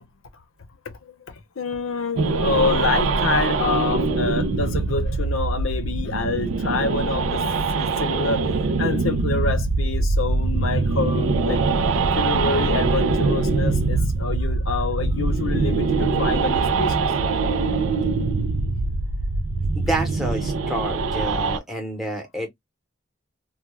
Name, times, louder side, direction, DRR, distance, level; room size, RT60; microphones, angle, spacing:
voice 1, 1.0-7.4 7.7-11.6 12.1-17.1, left 4 dB, 85° left, 0.6 m, -27 dB
sound 1, 2.2-21.6, right 3 dB, 85° right, 0.4 m, -23 dB
voice 2, 19.7-22.5, right 1 dB, ahead, 0.8 m, -28 dB
2.3 x 2.2 x 3.0 m
head